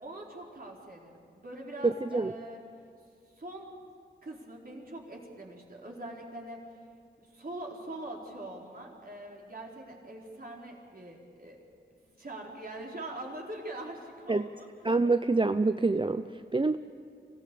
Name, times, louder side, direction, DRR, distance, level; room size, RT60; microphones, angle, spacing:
voice 1, 0.0-2.6 3.4-3.7 4.2-6.6 7.2-11.6 12.2-14.7, right 1 dB, 50° right, -2 dB, 4.3 m, -43 dB
voice 2, 1.8-2.3 14.3-14.5 14.8-16.8, right 3 dB, 25° right, 10 dB, 0.6 m, -26 dB
25.0 x 15.5 x 8.5 m, 2.3 s
cardioid pair, 50°, 19 cm